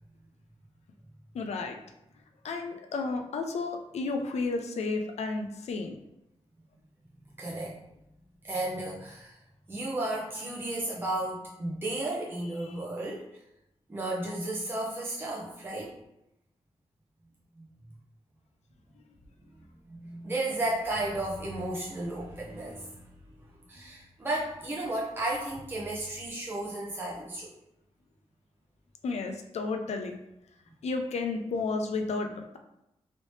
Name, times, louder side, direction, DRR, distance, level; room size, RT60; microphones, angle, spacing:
voice 1, 1.3-1.8 2.4-6.0 29.0-30.2 30.8-32.6, left 3 dB, 85° left, 4 dB, 0.4 m, -32 dB
voice 2, 7.4-7.8 8.4-9.4 9.7-13.3 13.9-16.0 17.6-17.7 19.9-23.1 23.7-27.5, right 1 dB, 20° right, -5 dB, 0.6 m, -33 dB
3.1 x 2.8 x 3.1 m, 0.84 s
wide cardioid pair, 90°, 11 cm